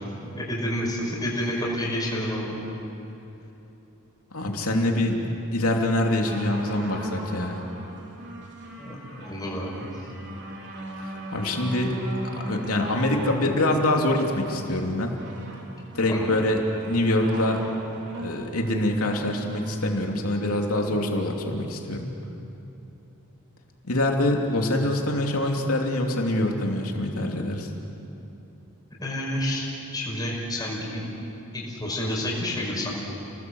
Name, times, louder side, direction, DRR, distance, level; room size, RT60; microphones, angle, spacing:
voice 1, 0.3-2.6 8.8-9.9 16.1-16.4 29.0-29.7 29.9-31.0 31.5-32.9, left 1 dB, 20° left, -4 dB, 5.4 m, -29 dB
voice 2, 4.3-7.6 11.0-12.0 12.3-15.2 15.9-17.6 18.2-22.1 23.8-27.7, left 1 dB, 75° left, 1 dB, 3.0 m, -25 dB
sound 1, 6.3-19.8 20.6-20.7, right 1 dB, 55° right, 3.8 m, -38 dB
30.0 x 19.5 x 8.0 m, 2.9 s
head